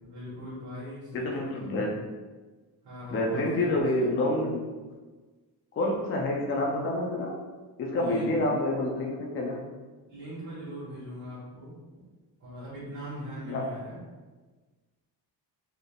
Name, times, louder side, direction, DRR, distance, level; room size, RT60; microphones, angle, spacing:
voice 1, 0.0-1.7 2.8-4.1 8.0-8.3 10.1-11.7 12.4-14.0, equal, 45° right, -10 dB, 1.3 m, -40 dB
voice 2, 1.1-1.9 3.1-4.6 5.8-7.4 7.8-9.7 13.5-13.7, left 1 dB, 35° left, -1 dB, 0.4 m, -28 dB
4.1 x 3.4 x 2.3 m, 1.3 s
wide cardioid pair, 170°, 41 cm